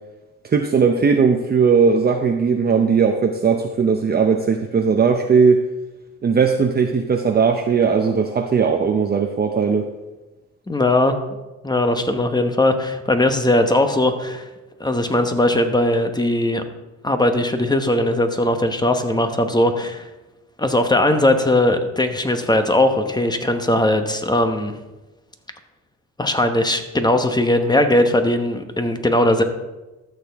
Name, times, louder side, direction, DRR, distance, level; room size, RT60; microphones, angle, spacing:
voice 1, 0.5-5.6 6.2-9.9, right 5 dB, 30° right, 4 dB, 0.7 m, -18 dB
voice 2, 10.7-11.2 11.6-14.4 14.8-16.6 17.0-20.0 20.6-24.7 26.2-29.4, left 1 dB, 15° left, 7 dB, 1.0 m, -19 dB
13.5 x 6.7 x 3.5 m, 1.1 s
cardioid pair, 90°, 30 cm